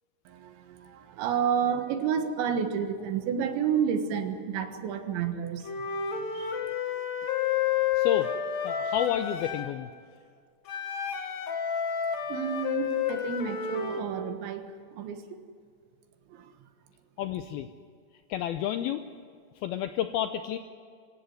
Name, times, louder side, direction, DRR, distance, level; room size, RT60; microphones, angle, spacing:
voice 1, 0.3-5.9 6.3-6.6 12.3-15.5 16.3-16.7, right 7 dB, 80° right, 7 dB, 3.8 m, -30 dB
Wind instrument woodwind instrument, 5.6-9.7 10.7-14.0, left 8 dB, 55° left, 2.1 m, -30 dB
voice 2, 8.0-8.3 8.6-9.9 17.2-17.7 18.3-19.0 19.6-20.6, left 11 dB, 90° left, 8 dB, 2.2 m, -30 dB
24.5 x 16.0 x 9.5 m, 2.1 s
omnidirectional pair, 5.3 m